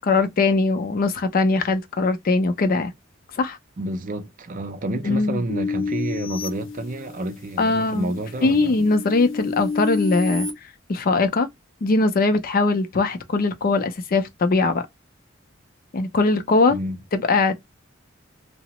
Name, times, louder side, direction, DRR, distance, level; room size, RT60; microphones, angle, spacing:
voice 1, 0.0-2.9 3.4-3.6 5.0-5.4 7.6-8.1 8.4-10.5 10.9-11.5 11.8-14.8 15.9-16.8 17.1-17.5, left 3 dB, 50° left, 0.5 m, -21 dB
voice 2, 3.8-8.8 16.7-17.0, right 1 dB, 45° right, 0.5 m, -29 dB
sound 1, 5.5-7.5 8.0-10.5, left 4 dB, 80° left, 0.7 m, -30 dB
2.8 x 2.0 x 2.8 m
head